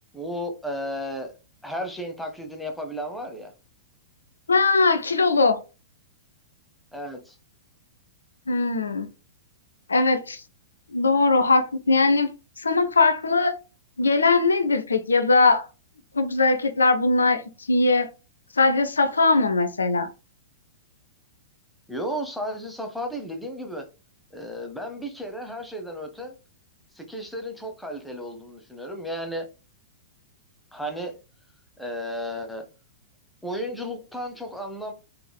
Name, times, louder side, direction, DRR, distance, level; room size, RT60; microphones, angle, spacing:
voice 1, 0.1-1.3 1.6-3.5 6.9-7.4 21.9-23.9 24.3-26.4 26.9-29.5 30.7-31.2 31.8-32.7 33.4-34.9, equal, ahead, 0.8 m, -33 dB
voice 2, 4.5-5.6 8.5-9.1 9.9-10.4 10.9-12.3 12.6-13.5 14.0-15.7 16.1-17.4 17.7-18.1 18.6-20.1, left 3 dB, 80° left, 0.4 m, -20 dB
3.6 x 3.2 x 2.2 m
figure-of-eight pair, 105°, 0 cm